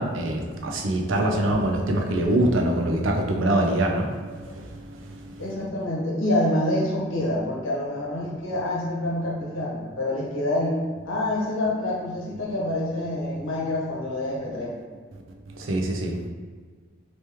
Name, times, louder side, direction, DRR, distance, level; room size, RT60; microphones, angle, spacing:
voice 1, 0.0-4.1 15.7-16.3, right 1 dB, 80° right, 2 dB, 0.5 m, -23 dB
voice 2, 5.4-14.7, left 1 dB, 90° left, -4 dB, 1.0 m, -27 dB
3.0 x 3.0 x 3.4 m, 1.5 s
head